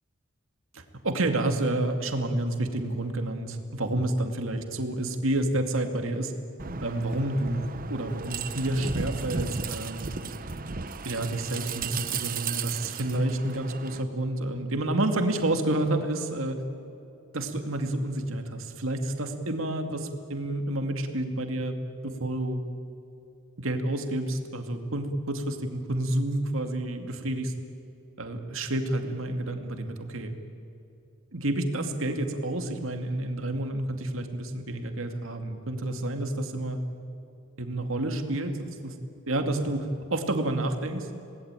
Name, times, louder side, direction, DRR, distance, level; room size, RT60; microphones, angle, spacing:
voice 1, 0.7-6.3 6.8-10.1 11.0-16.6 17.3-21.8 22.2-22.6 23.6-27.5 28.2-30.3 31.3-36.8 37.6-38.9 39.3-41.1, right 1 dB, 70° right, 5 dB, 2.4 m, -29 dB
sound 1, 6.6-14.0, right 5 dB, 45° right, 1.0 m, -35 dB
27.5 x 19.0 x 9.1 m, 2.7 s
head